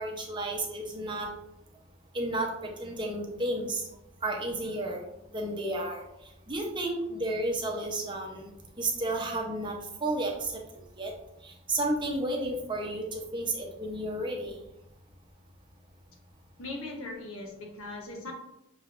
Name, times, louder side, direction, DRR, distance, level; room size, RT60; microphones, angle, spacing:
voice 1, 0.0-1.3 2.1-3.8 4.2-5.0 5.3-6.0 6.5-8.5 8.8-10.6 11.0-11.1 11.4-14.6, right 1 dB, 20° right, 0 dB, 0.7 m, -32 dB
voice 2, 16.6-18.3, left 2 dB, 80° left, 0 dB, 1.1 m, -39 dB
6.1 x 3.4 x 2.5 m, 0.87 s
head